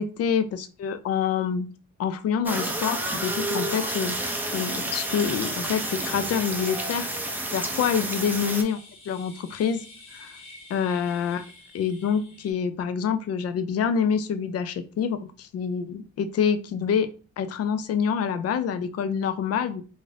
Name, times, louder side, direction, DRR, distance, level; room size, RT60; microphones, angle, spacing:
voice 1, 0.0-1.7 2.0-4.2 4.5-7.1 7.5-8.8 9.1-9.8 10.1-10.4 10.7-11.4 11.7-17.1 17.4-19.8, left 7 dB, 55° left, 10 dB, 0.4 m, -26 dB
sound 1, 2.5-8.6, right 1 dB, 5° right, 0.5 m, -30 dB
sound 2, 4.1-12.5, left 3 dB, 75° left, 1.3 m, -47 dB
2.6 x 2.5 x 3.2 m, 0.36 s
cardioid pair, 90°, 30 cm